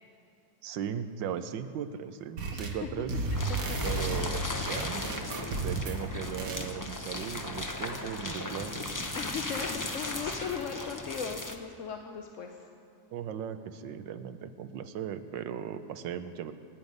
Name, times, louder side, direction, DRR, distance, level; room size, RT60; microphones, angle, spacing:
voice 1, 0.6-3.1 3.8-5.0 5.6-8.8 13.1-16.5, right 9 dB, 75° right, 10 dB, 1.4 m, -37 dB
sound 1, 2.4-2.8 3.1-6.0 6.4-6.7, right 2 dB, 50° right, 1.6 m, -33 dB
voice 2, 2.5-2.9 3.5-3.6 4.1-4.3 9.1-12.6, left 7 dB, 55° left, 4 dB, 0.9 m, -38 dB
sound 2, 3.3-11.6, left 2 dB, 30° left, 0.3 m, -36 dB
26.0 x 9.6 x 5.3 m, 2.4 s
omnidirectional pair, 2.1 m